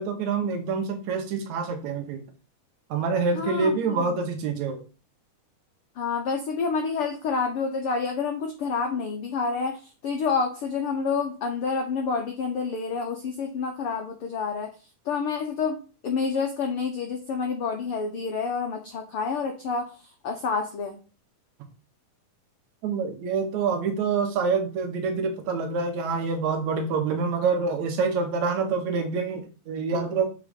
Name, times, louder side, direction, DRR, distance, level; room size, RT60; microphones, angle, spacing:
voice 1, 0.0-2.2 2.9-4.8 22.8-30.3, right 5 dB, 70° right, 6 dB, 2.2 m, -26 dB
voice 2, 3.3-4.2 6.0-14.7 15.0-15.8 16.0-19.9 20.2-21.0, left 5 dB, 85° left, 4 dB, 1.2 m, -28 dB
7.2 x 3.8 x 5.0 m, 0.35 s
omnidirectional pair, 3.7 m